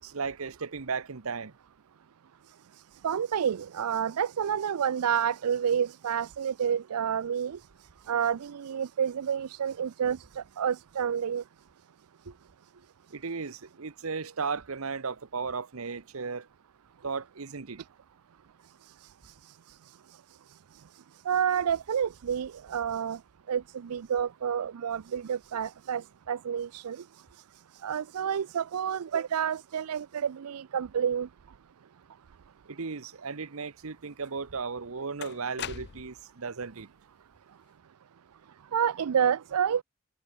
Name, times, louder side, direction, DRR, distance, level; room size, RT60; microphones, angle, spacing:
voice 1, 0.0-1.5 12.3-12.4 13.1-16.5 17.0-17.8 32.7-36.9, right 5 dB, 70° right, 0.9 m, -35 dB
voice 2, 3.0-7.6 8.1-11.4 21.3-23.2 23.5-27.0 27.8-31.3 38.7-39.8, right 8 dB, 85° right, 0.4 m, -29 dB
sound 1, 34.2-34.3 35.2-36.3, left 8 dB, 50° left, 0.6 m, -40 dB
head